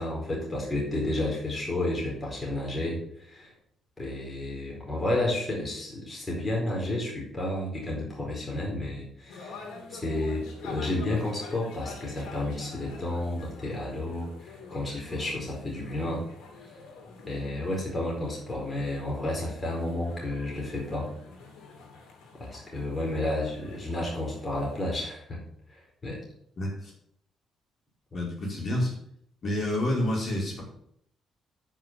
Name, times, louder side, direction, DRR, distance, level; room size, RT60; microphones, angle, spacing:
voice 1, 0.0-3.5 4.0-9.6 9.9-16.2 16.6-16.7 17.3-21.1 22.4-25.4 25.7-26.2, left 1 dB, 25° left, -3 dB, 4.6 m, -31 dB
sound 1, 9.3-24.8, left 4 dB, 90° left, 2.8 m, -47 dB
voice 2, 26.6-26.9 28.1-28.9 29.4-30.7, left 1 dB, 45° left, -3 dB, 4.9 m, -28 dB
9.5 x 5.8 x 7.5 m, 0.71 s
cardioid pair, 90°, 0 cm